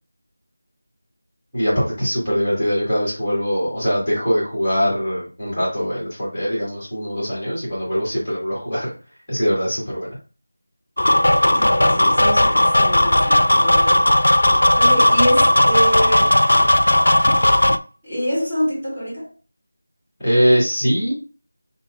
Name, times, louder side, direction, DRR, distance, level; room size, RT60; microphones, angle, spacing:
voice 1, 1.5-8.9 9.3-10.2 20.2-21.1, equal, 5° left, 1.4 m, -22 dB
sound 1, 11.0-17.8, left 1 dB, 85° left, 0.3 m, -15 dB
voice 2, 11.5-14.0 14.7-16.3 18.0-19.3, equal, 15° right, 2.1 m, -25 dB
5.8 x 2.6 x 2.3 m
figure-of-eight pair, 180°, 0 cm